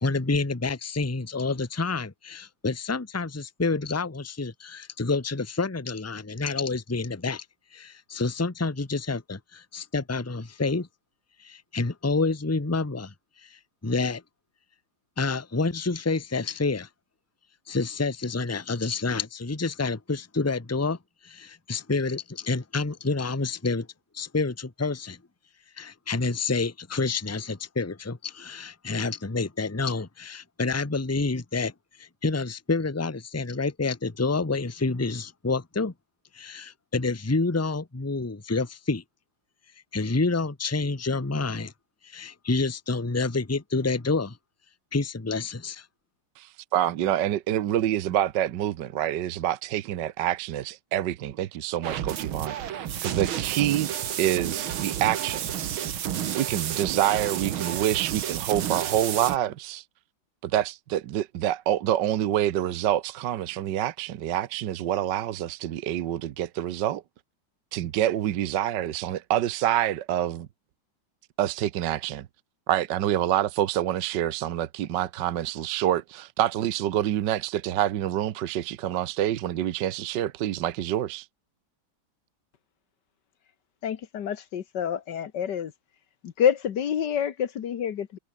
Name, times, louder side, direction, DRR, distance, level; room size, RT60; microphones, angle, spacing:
voice 1, 0.0-7.4 7.7-10.9 11.4-13.1 13.4-14.2 15.2-16.9 17.7-21.0 21.2-23.9 24.1-25.2 25.8-31.7 32.0-35.9 36.3-39.0 39.9-41.7 42.0-44.4 44.9-45.9, left 3 dB, 10° left, 1.0 m, -28 dB
voice 2, 46.4-53.9 54.2-55.4 55.7-55.9 56.3-59.8 60.4-67.0 67.7-70.5 71.4-72.3 72.7-81.3, right 12 dB, 65° right, 1.4 m, -27 dB
sound 1, 51.8-59.4, right 10 dB, 85° right, 2.1 m, -31 dB
voice 3, 83.8-85.7 86.2-88.2, left 8 dB, 60° left, 1.7 m, -27 dB
omnidirectional pair, 2.2 m